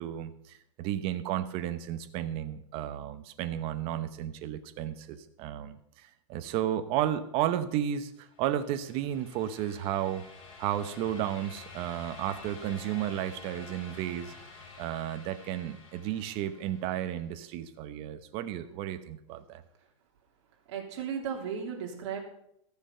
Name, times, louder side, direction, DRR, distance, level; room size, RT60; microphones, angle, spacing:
voice 1, 0.0-10.3 10.6-14.3 14.8-19.6, right 11 dB, 35° right, 11 dB, 0.8 m, -33 dB
sound 1, 8.3-17.2, left 4 dB, 70° left, 4.7 m, -49 dB
voice 2, 20.7-22.2, right 7 dB, 60° right, 1 dB, 2.9 m, -35 dB
14.5 x 6.9 x 5.5 m, 0.78 s
supercardioid pair, 160°, 17 cm